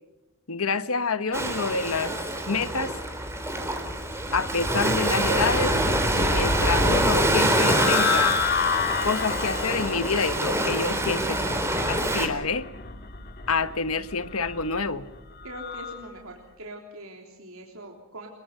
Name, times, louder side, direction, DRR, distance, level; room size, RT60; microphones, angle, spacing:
voice 1, 0.5-2.2 2.5-2.9 4.3-5.8 6.1-8.4 9.0-11.4 11.9-12.6 13.5-15.1, left 4 dB, 80° left, 12 dB, 1.3 m, -27 dB
Ocean, 1.3-12.3, right 1 dB, 10° right, 3.5 m, -26 dB
sound 1, 4.2-16.0, left 4 dB, 45° left, 2.6 m, -30 dB
voice 2, 15.4-18.3, right 1 dB, 75° right, 1 dB, 3.6 m, -42 dB
28.0 x 22.5 x 5.7 m, 1.0 s
head